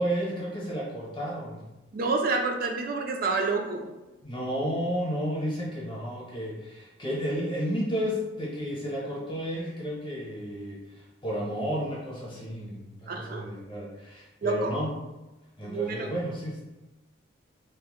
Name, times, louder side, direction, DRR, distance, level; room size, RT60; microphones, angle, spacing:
voice 1, 0.0-1.6 4.2-14.9 15.6-16.6, equal, 25° left, -5 dB, 0.8 m, -32 dB
voice 2, 1.9-3.9 13.1-13.4 14.4-14.7 15.6-16.1, right 3 dB, 45° right, 3 dB, 0.3 m, -28 dB
2.6 x 2.0 x 3.6 m, 1.1 s
head